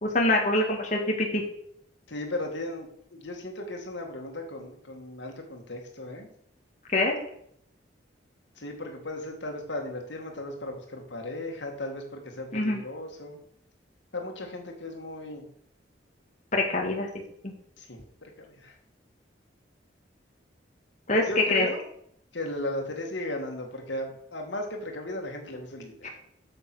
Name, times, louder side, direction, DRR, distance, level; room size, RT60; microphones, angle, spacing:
voice 1, 0.0-1.4 6.9-7.1 12.5-12.8 16.5-17.1 21.1-21.7 26.0-26.1, left 2 dB, 40° left, 0 dB, 1.7 m, -24 dB
voice 2, 2.1-6.3 8.6-13.4 14.1-15.4 17.8-18.8 21.3-21.8 22.3-26.1, left 1 dB, 75° left, 2 dB, 2.1 m, -36 dB
8.8 x 7.0 x 6.2 m, 0.69 s
head